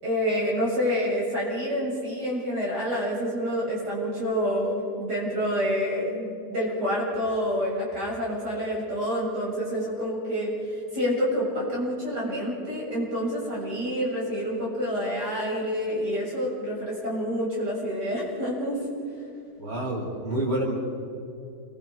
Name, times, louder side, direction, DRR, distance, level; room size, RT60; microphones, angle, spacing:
voice 1, 0.0-18.8, equal, 90° right, -5 dB, 7.8 m, -28 dB
voice 2, 19.6-20.8, right 1 dB, 40° right, -6 dB, 7.1 m, -28 dB
29.0 x 23.5 x 4.9 m, 2.6 s
omnidirectional pair, 1.7 m